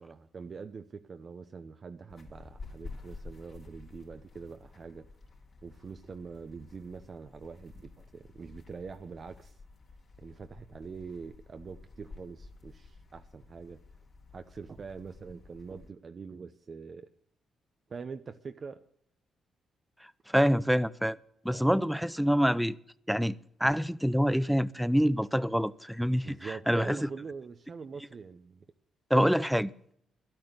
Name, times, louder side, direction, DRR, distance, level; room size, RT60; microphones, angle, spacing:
voice 1, 0.0-5.1 5.6-9.6 10.2-13.8 14.3-17.1 17.9-18.8 21.5-21.9 26.2-28.6, right 5 dB, 40° right, 0.7 m, -44 dB
sound 1, 2.1-15.9, left 3 dB, 45° left, 3.3 m, -51 dB
voice 2, 20.0-21.2 21.4-22.8 23.1-27.1 29.1-29.7, equal, ahead, 0.5 m, -26 dB
12.0 x 8.8 x 8.1 m
cardioid pair, 90°, 0 cm